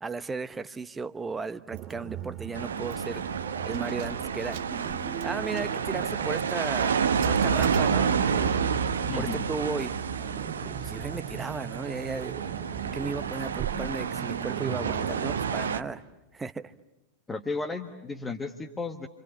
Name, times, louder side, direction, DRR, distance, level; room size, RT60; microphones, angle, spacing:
voice 1, 0.0-3.3 3.7-4.6 5.2-7.0 7.2-8.7 9.1-10.0 10.8-12.4 12.9-16.0 16.3-16.7, right 4 dB, 15° right, 13 dB, 1.0 m, -35 dB
sound 1, 1.7-15.6, right 7 dB, 30° right, 2.2 m, -38 dB
Keys jangling, 1.7-1.9 2.3-2.4 2.8-3.2 3.6-8.4, right 10 dB, 50° right, 1.5 m, -48 dB
sound 2, 2.5-15.8, right 6 dB, 70° right, 1.2 m, -29 dB
voice 2, 9.0-9.4 17.3-19.1, left 3 dB, 15° left, 4 dB, 1.5 m, -34 dB
30.0 x 27.0 x 7.3 m, 1.0 s
figure-of-eight pair, 90°, 0 cm